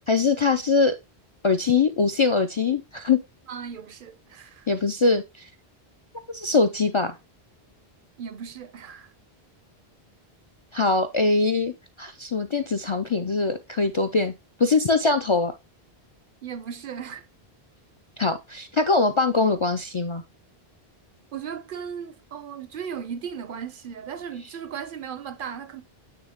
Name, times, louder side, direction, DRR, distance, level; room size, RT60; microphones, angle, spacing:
voice 1, 0.1-0.9 1.4-3.2 4.7-5.5 6.3-7.2 10.7-14.3 14.6-15.5 18.2-20.2, left 4 dB, 45° left, 0.4 m, -22 dB
voice 2, 3.5-4.7 8.2-9.1 16.4-17.3 21.3-25.8, right 7 dB, 65° right, 0.7 m, -36 dB
8.9 x 3.2 x 3.5 m
omnidirectional pair, 1.1 m